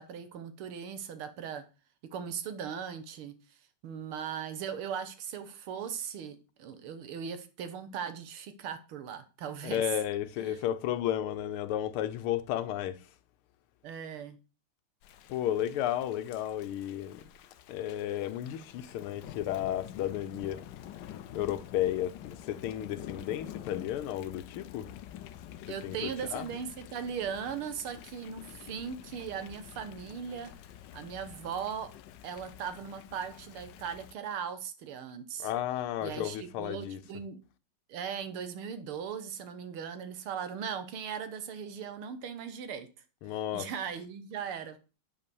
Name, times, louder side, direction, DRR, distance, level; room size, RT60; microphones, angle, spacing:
voice 1, 0.0-1.6 2.1-3.6 3.8-9.8 10.4-10.6 13.8-14.4 25.7-30.5 30.9-31.9 32.2-35.5 36.0-37.4 37.9-42.9 43.5-44.8, right 7 dB, 90° right, 2.0 m, -38 dB
voice 2, 9.6-13.1 15.3-17.3 17.7-20.6 21.3-24.9 25.8-26.5 35.4-37.0 43.2-43.7, left 11 dB, 90° left, 1.7 m, -33 dB
Thunder / Rain, 15.0-34.1, left 11 dB, 70° left, 1.1 m, -48 dB
8.0 x 5.4 x 7.0 m
omnidirectional pair, 2.3 m